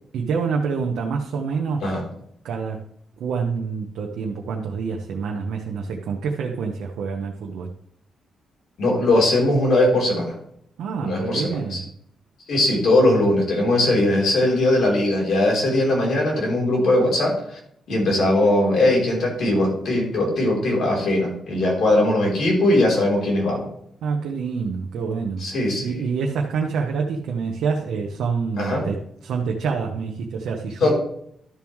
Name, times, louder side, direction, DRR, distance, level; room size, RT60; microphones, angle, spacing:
voice 1, 0.1-1.9 2.4-2.8 3.2-7.7 10.8-11.9 24.0-25.4 25.8-29.0 29.2-30.9, right 5 dB, 80° right, 1 dB, 1.0 m, -26 dB
voice 2, 8.8-10.4 11.0-11.8 12.5-17.6 17.9-23.7 25.4-26.0 28.6-28.8 30.8-30.9, left 1 dB, 55° left, -2 dB, 3.6 m, -20 dB
12.5 x 7.2 x 3.2 m, 0.70 s
wide cardioid pair, 180°, 0 cm